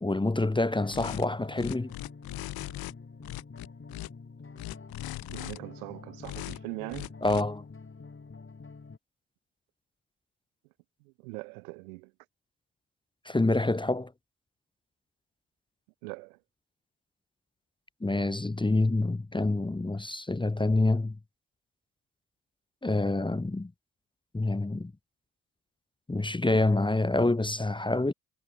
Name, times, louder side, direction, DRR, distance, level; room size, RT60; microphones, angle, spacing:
voice 1, 0.0-1.9 7.2-7.6 13.2-14.1 18.0-21.2 22.8-23.7 24.3-24.9 26.1-28.1, left 2 dB, 10° left, 1.0 m, -27 dB
sound 1, 0.6-9.0, left 4 dB, 30° left, 4.5 m, -47 dB
sound 2, 0.9-1.3 1.6-2.9 3.2-4.1 4.6-5.6 6.2-6.6 6.9-7.4, left 18 dB, 60° left, 0.8 m, -39 dB
voice 2, 5.3-7.1 11.0-12.1 16.0-16.4, right 29 dB, 80° right, 1.6 m, -41 dB
figure-of-eight pair, 40°, 42 cm